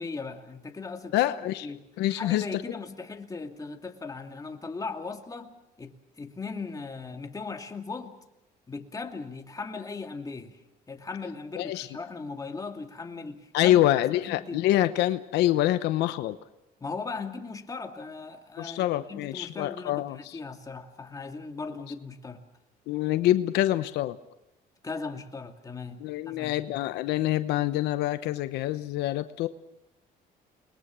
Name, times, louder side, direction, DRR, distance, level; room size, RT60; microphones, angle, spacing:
voice 1, 0.0-1.2 1.6-8.2 8.7-10.6 10.9-13.8 14.3-14.7 16.8-22.4 24.8-26.9, left 4 dB, 20° left, 4 dB, 2.5 m, -38 dB
voice 2, 1.1-1.7 2.0-2.6 11.6-11.9 13.5-16.4 18.6-20.4 22.9-24.2 26.0-29.5, left 14 dB, 85° left, 11 dB, 0.9 m, -26 dB
29.0 x 21.0 x 6.2 m, 0.87 s
cardioid pair, 110°, 17 cm